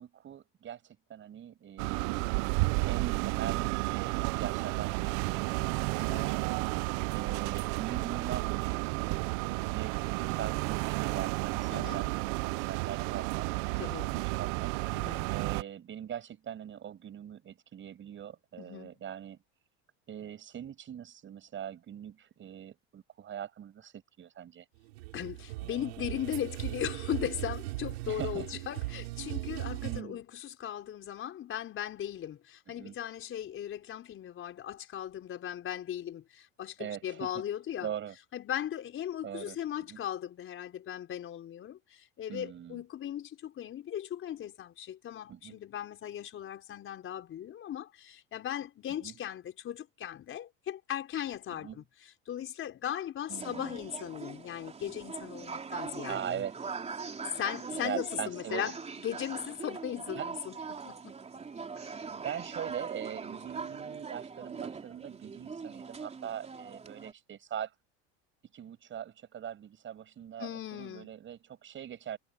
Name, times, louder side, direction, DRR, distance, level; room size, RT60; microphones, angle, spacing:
voice 1, 0.0-2.2 2.8-6.5 7.1-13.5 14.1-14.7 15.3-19.4 20.1-24.7 28.1-28.5 29.8-30.2 32.8-33.0 36.8-37.4 37.8-38.2 39.2-40.0 42.3-42.8 45.3-45.6 48.9-49.1 51.5-51.8 53.3-53.8 56.1-56.7 57.7-58.8 60.0-60.3 62.1-67.8 68.5-72.2, right 9 dB, 40° right, 6.9 m, -42 dB
sound 1, 1.8-15.6, right 27 dB, 65° right, 0.7 m, -32 dB
voice 2, 6.0-6.4 11.7-12.1 13.8-14.1 14.9-15.3 18.6-19.0 25.1-37.9 38.3-56.4 57.4-58.7 59.0-61.1 61.8-61.9 70.4-71.1, left 10 dB, 40° left, 4.7 m, -38 dB
sound 2, 24.8-30.0, right 20 dB, 85° right, 7.5 m, -38 dB
sound 3, 53.3-67.1, right 5 dB, 20° right, 3.8 m, -42 dB
supercardioid pair, 110°, 31 cm